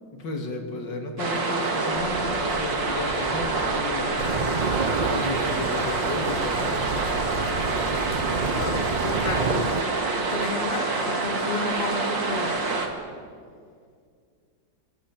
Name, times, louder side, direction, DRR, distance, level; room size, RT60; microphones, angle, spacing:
voice 1, 0.1-4.2 4.9-6.9, left 3 dB, 75° left, 3 dB, 3.1 m, -33 dB
sound 1, 1.2-12.9, right 3 dB, 80° right, 3.0 m, -27 dB
sound 2, 1.9-9.3, right 1 dB, 55° right, 6.9 m, -39 dB
sound 3, 4.2-9.8, right 4 dB, 40° right, 0.6 m, -30 dB
voice 2, 8.5-12.7, left 4 dB, 35° left, 4 dB, 1.9 m, -32 dB
28.5 x 14.0 x 8.9 m, 2.1 s
omnidirectional pair, 1.9 m